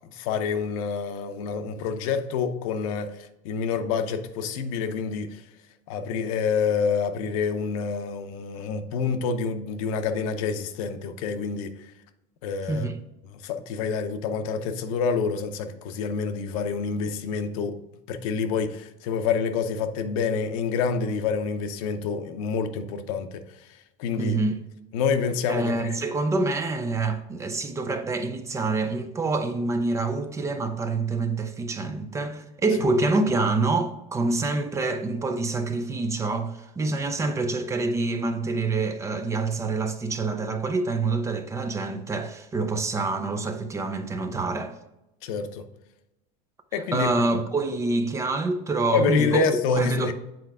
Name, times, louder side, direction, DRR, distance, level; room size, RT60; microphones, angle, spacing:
voice 1, 0.1-3.1 3.4-5.4 5.9-11.7 12.4-12.9 13.4-17.8 18.1-23.4 24.0-24.4 24.9-26.0 45.2-45.6 46.7-47.1 48.9-50.1, left 5 dB, 80° left, 0.7 m, -27 dB
voice 2, 24.2-24.6 25.5-44.7 46.9-49.4 49.7-50.1, right 3 dB, 15° right, 0.5 m, -26 dB
7.8 x 4.5 x 3.6 m
cardioid pair, 150°, 18 cm